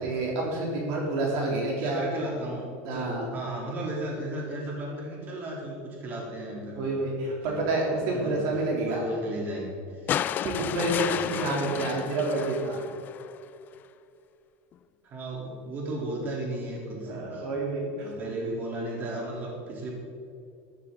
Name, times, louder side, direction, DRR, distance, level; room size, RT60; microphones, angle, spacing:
voice 1, 0.0-2.0 2.8-3.3 6.7-9.0 10.4-12.8 17.1-18.3, right 2 dB, 55° right, -2 dB, 3.1 m, -29 dB
voice 2, 1.8-6.9 7.4-7.6 8.2-10.2 10.9-11.3 15.0-17.5 18.0-19.9, right 1 dB, 30° right, -3 dB, 3.3 m, -35 dB
sound 1, 10.1-13.4 14.7-14.8, left 10 dB, 30° left, 0.4 m, -32 dB
13.5 x 13.0 x 3.8 m, 2.5 s
supercardioid pair, 155°, 6 cm